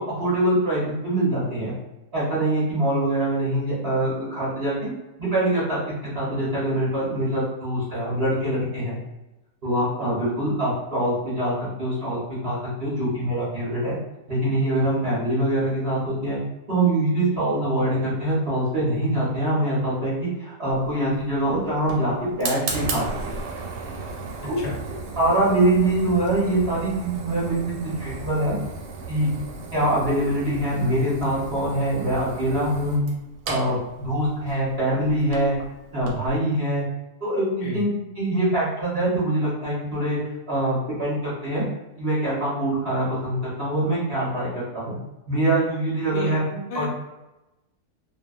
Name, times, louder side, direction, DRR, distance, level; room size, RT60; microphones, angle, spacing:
voice 1, 0.0-1.7 2.1-4.9 5.2-9.0 9.6-14.0 14.3-16.4 16.7-23.3 24.4-24.6 25.2-28.6 29.1-29.3 29.7-33.0 33.5-33.8 34.0-35.5 35.9-36.8 37.2-37.9 38.2-40.2 40.5-41.6 42.0-44.5 44.7-44.9 45.3-46.4 46.7-46.8, right 1 dB, 50° right, -8 dB, 0.8 m, -24 dB
Fire, 20.7-36.4, right 3 dB, 90° right, 1.2 m, -36 dB
voice 2, 46.1-46.9, left 3 dB, 85° left, -1 dB, 1.2 m, -31 dB
2.6 x 2.1 x 2.3 m, 0.98 s
omnidirectional pair, 1.8 m